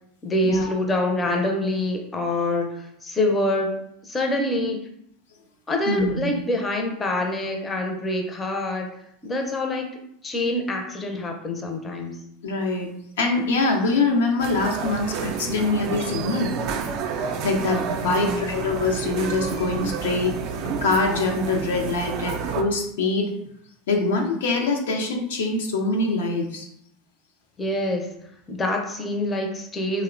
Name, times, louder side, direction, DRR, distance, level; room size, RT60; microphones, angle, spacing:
voice 1, 0.2-3.7 4.1-4.8 5.7-8.9 9.2-9.9 10.2-12.1 18.0-18.5 27.6-28.1 28.5-30.0, left 1 dB, 20° left, 2 dB, 0.5 m, -25 dB
voice 2, 5.9-6.3 12.4-12.9 13.2-16.5 17.4-20.3 20.8-23.3 23.9-26.7, left 3 dB, 80° left, 2 dB, 0.4 m, -24 dB
sound 1, 14.4-22.6, right 6 dB, 55° right, 0.3 m, -30 dB
2.8 x 2.0 x 2.4 m, 0.73 s
hypercardioid pair, 95°, 0 cm